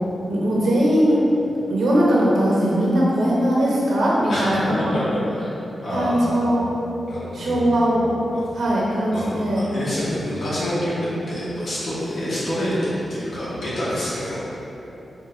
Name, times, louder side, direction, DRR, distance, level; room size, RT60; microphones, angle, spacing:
voice 1, 0.3-1.2 1.7-5.0 5.9-6.7 7.3-8.1 8.5-9.6, equal, 80° right, -6 dB, 0.5 m, -20 dB
voice 2, 5.8-6.5 7.1-7.8 8.3-8.6 9.1-9.3 9.6-14.4, equal, 70° left, -10 dB, 1.1 m, -27 dB
4.7 x 2.5 x 2.3 m, 3.0 s
wide cardioid pair, 125°, 0 cm